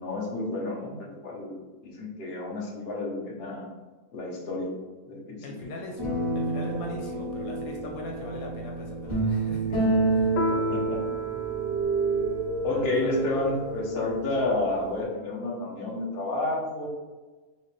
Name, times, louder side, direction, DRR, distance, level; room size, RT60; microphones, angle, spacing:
voice 1, 0.0-3.7 4.1-4.7 5.1-5.7 10.5-11.0 12.6-16.9, left 2 dB, 45° left, -2 dB, 1.1 m, -30 dB
voice 2, 5.4-6.0 6.3-10.3 12.7-13.3, left 2 dB, 85° left, 0 dB, 1.3 m, -40 dB
sound 1, 6.0-15.0, right 3 dB, 30° left, 1.7 m, -30 dB
Piano, 10.4-15.3, left 5 dB, 70° left, 0.9 m, -37 dB
sound 2, 11.1-14.2, right 3 dB, 35° right, 0.9 m, -32 dB
5.9 x 2.5 x 3.2 m, 1.2 s
omnidirectional pair, 1.5 m